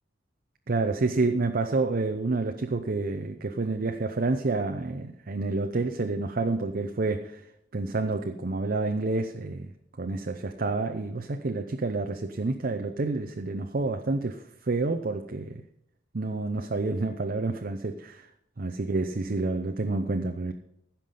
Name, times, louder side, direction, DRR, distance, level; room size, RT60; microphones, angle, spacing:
voice 1, 0.7-7.4 7.7-9.7 10.0-15.6 16.1-18.3 18.6-20.5, right 3 dB, 50° right, 6 dB, 0.7 m, -29 dB
15.5 x 6.0 x 5.5 m, 0.77 s
head